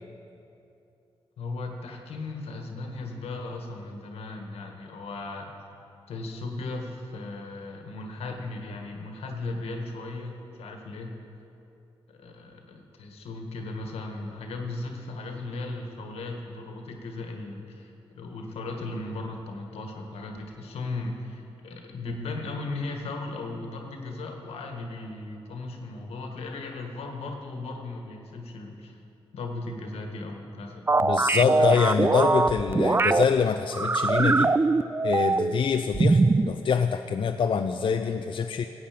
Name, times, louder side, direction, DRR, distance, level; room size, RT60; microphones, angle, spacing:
voice 1, 1.4-5.5 6.1-11.1 12.1-29.0 29.3-30.8 31.3-31.9, left 2 dB, 80° left, 2 dB, 1.6 m, -36 dB
sound 1, 30.9-33.2 33.7-35.6 35.9-36.5, right 3 dB, 25° right, 0.4 m, -22 dB
voice 2, 31.0-34.5 35.0-38.6, left 6 dB, 55° left, 6 dB, 0.5 m, -25 dB
16.0 x 8.4 x 5.1 m, 2.8 s
supercardioid pair, 55°, 10 cm